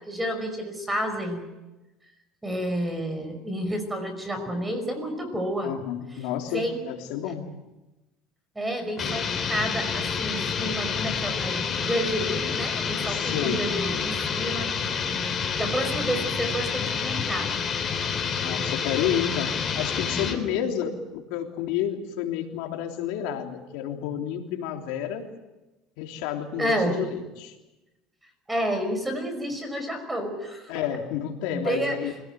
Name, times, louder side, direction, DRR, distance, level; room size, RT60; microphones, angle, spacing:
voice 1, 0.0-1.4 2.4-5.7 6.5-6.8 8.6-14.7 15.5-17.5 26.6-27.0 28.5-30.7 31.5-32.1, equal, 10° right, 7 dB, 5.5 m, -30 dB
voice 2, 5.6-7.4 13.1-13.6 18.4-25.3 26.0-27.5 30.7-32.1, left 9 dB, 75° left, 3 dB, 3.3 m, -30 dB
sound 1, 9.0-20.4, left 6 dB, 30° left, 3.3 m, -28 dB
25.5 x 17.5 x 9.2 m, 1.0 s
cardioid pair, 130°, 0 cm